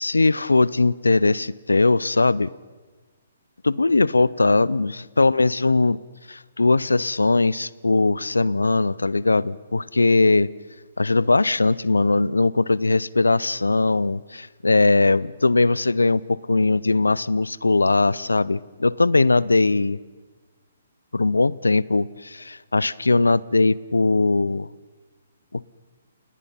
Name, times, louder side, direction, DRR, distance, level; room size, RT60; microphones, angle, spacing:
voice 1, 0.0-2.5 3.6-6.0 6.3-10.5 11.0-20.0 21.1-24.7 25.5-25.6, left 3 dB, 90° left, 22 dB, 0.6 m, -20 dB
30.0 x 18.5 x 5.7 m, 1.4 s
figure-of-eight pair, 135°, 0 cm